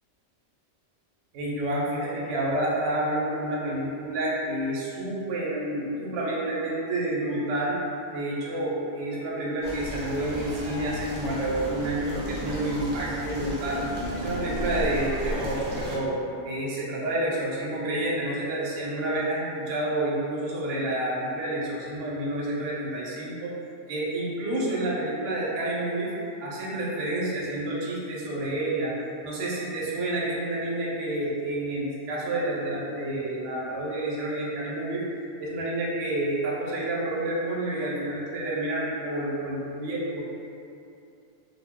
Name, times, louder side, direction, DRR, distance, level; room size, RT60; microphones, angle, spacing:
voice 1, 1.3-7.8 8.1-13.8 14.1-16.2 16.4-23.5 23.9-26.1 26.4-28.9 29.2-35.0 35.4-40.2, right 1 dB, 75° right, -6 dB, 0.9 m, -29 dB
sound 1, 9.6-16.0, equal, 50° right, 0.5 m, -34 dB
2.2 x 2.1 x 3.4 m, 2.6 s
omnidirectional pair, 1.3 m